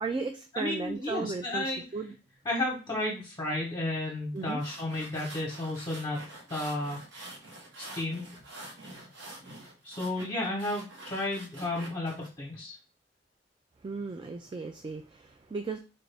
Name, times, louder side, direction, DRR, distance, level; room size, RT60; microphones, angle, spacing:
voice 1, 0.0-2.1 4.3-4.6 13.8-15.8, right 4 dB, 25° right, 6 dB, 0.3 m, -35 dB
voice 2, 0.5-1.8 2.4-7.0 7.8-8.3 9.8-12.8, left 2 dB, 20° left, -3 dB, 0.9 m, -33 dB
sound 1, 4.4-12.3, right 1 dB, 80° right, 1.1 m, -47 dB
4.4 x 2.5 x 3.3 m, 0.34 s
head